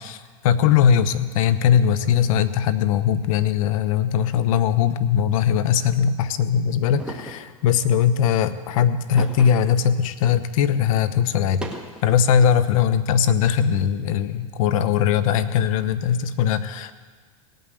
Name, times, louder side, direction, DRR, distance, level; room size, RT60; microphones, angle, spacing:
voice 1, 0.0-11.6 12.0-16.9, left 8 dB, 65° left, 12 dB, 0.9 m, -20 dB
sound 1, 7.0-7.5 9.2-9.8 10.2-10.3 11.4-12.2, right 1 dB, 5° right, 1.9 m, -35 dB
17.5 x 9.3 x 7.9 m, 1.5 s
hypercardioid pair, 105°, 18 cm